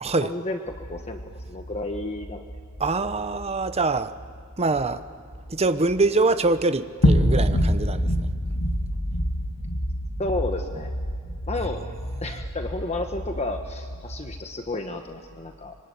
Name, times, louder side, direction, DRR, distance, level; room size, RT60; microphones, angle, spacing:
voice 1, 0.2-2.4 10.2-10.9 11.5-11.8 12.2-15.8, left 2 dB, 30° left, 5 dB, 1.2 m, -32 dB
sound 1, 0.7-6.1 6.4-6.6 7.0-14.4, equal, 85° left, 2.7 m, -28 dB
voice 2, 2.8-4.1 4.6-5.0 5.5-8.1, right 3 dB, 30° right, 10 dB, 0.9 m, -24 dB
25.0 x 24.0 x 9.6 m, 2.1 s
head